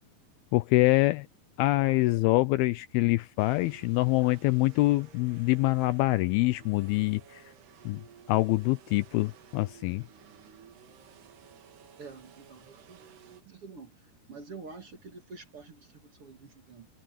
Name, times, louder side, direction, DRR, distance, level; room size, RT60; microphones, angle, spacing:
voice 1, 0.5-1.3 1.6-7.4 7.9-8.0 8.3-10.0, left 20 dB, 80° left, 2.2 m, -25 dB
sound 1, 3.4-13.4, right 8 dB, 75° right, 4.4 m, -55 dB
voice 2, 12.0-13.1 13.4-13.9 14.3-16.9, right 4 dB, 45° right, 2.3 m, -47 dB
omnidirectional pair, 4.7 m